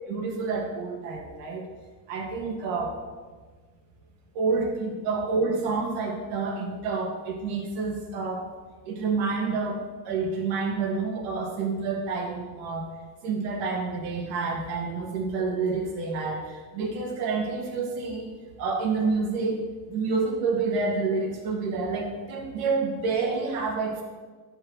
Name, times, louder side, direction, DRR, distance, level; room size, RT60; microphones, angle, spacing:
voice 1, 0.1-1.6 2.1-2.9 4.3-8.4 8.9-12.9 13.2-16.4 16.7-18.3 18.6-24.0, right 4 dB, 75° right, 1 dB, 2.5 m, -28 dB
13.5 x 4.7 x 6.3 m, 1.4 s
supercardioid pair, 95°, 50 cm